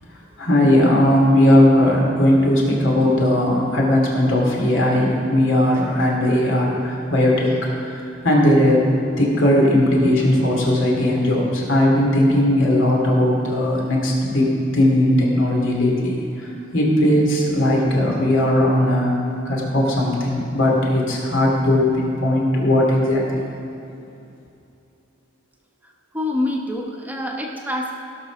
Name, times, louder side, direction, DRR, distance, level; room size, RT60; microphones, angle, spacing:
voice 1, 0.4-8.9 9.2-14.5 14.7-19.1 19.4-23.4, left 1 dB, 80° left, -2 dB, 2.6 m, -18 dB
voice 2, 26.1-27.9, left 1 dB, 10° right, 0 dB, 0.9 m, -25 dB
16.5 x 6.0 x 6.0 m, 2.7 s
head